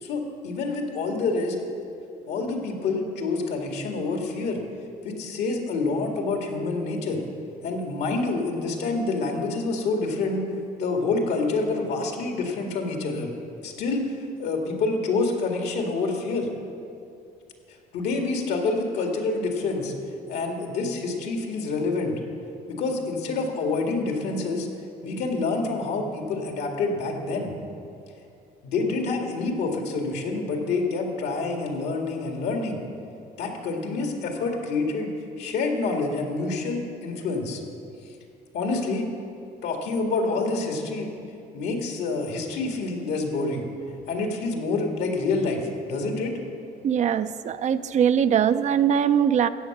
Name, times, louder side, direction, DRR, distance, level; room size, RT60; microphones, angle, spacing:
voice 1, 0.0-1.6 2.3-4.6 5.0-7.3 7.6-10.4 10.8-13.3 13.6-16.5 17.9-19.9 20.3-22.1 22.7-24.7 25.0-27.5 28.6-32.8 33.4-35.1 35.4-37.6 38.5-39.1 39.6-41.1 41.5-43.7 44.1-46.3, left 3 dB, 75° left, 2 dB, 2.0 m, -27 dB
voice 2, 46.8-49.5, right 8 dB, 45° right, 12 dB, 0.5 m, -21 dB
14.5 x 8.6 x 6.0 m, 2.6 s
cardioid pair, 110°, 17 cm